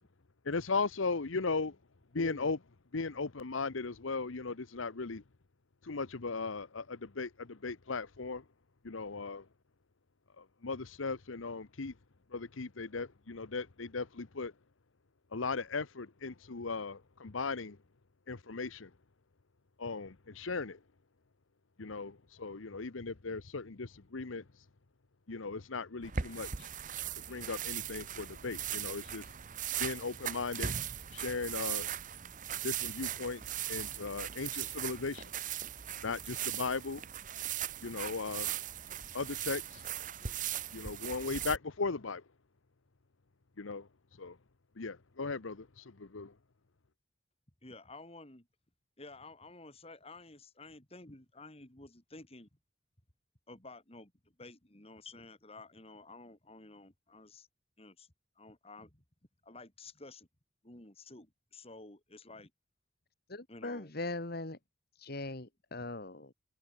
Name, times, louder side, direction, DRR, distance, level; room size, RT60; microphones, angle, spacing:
voice 1, 0.4-1.7 2.1-2.6 2.9-5.2 5.8-8.4 8.8-9.5 10.4-11.9 12.3-14.5 15.3-17.8 18.3-18.9 19.8-20.8 21.8-24.4 25.3-26.7 27.2-29.3 29.8-30.7 31.1-31.9 32.6-35.3 36.0-37.0 37.8-38.6 39.1-39.9 40.7-42.2 43.6-43.9 44.2-44.4 44.8-46.3, left 4 dB, 90° left, 1.0 m, -37 dB
voice 2, 2.1-2.5 47.6-48.5 49.0-52.5 53.5-54.1 54.4-57.5 57.8-58.1 58.4-59.0 59.4-60.3 60.6-62.5 63.5-63.9, left 2 dB, 30° left, 2.9 m, -52 dB
sound 1, 26.0-41.6, right 10 dB, 40° right, 0.9 m, -39 dB
voice 3, 63.3-64.6 65.0-66.3, left 2 dB, 55° left, 2.1 m, -40 dB
head